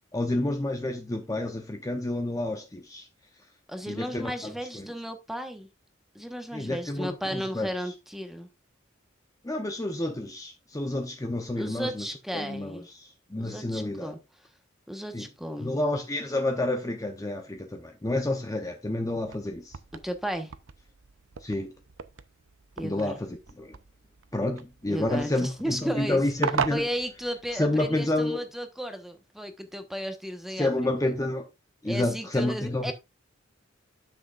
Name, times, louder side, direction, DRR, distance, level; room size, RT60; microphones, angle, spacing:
voice 1, 0.1-3.1 3.9-4.9 6.5-7.7 9.4-14.1 15.1-15.3 15.6-19.8 21.4-21.7 22.8-23.7 24.3-26.9 27.5-28.4 30.6-31.5 31.8-32.9, left 1 dB, 15° left, 0.8 m, -29 dB
voice 2, 3.7-5.7 6.1-8.5 11.6-12.9 13.4-14.2 14.9-15.8 20.0-20.5 22.8-23.2 24.9-26.2 26.7-30.7 31.8-32.9, equal, ahead, 1.2 m, -34 dB
sound 1, 19.1-27.8, right 6 dB, 85° right, 0.7 m, -38 dB
11.5 x 6.4 x 2.5 m
head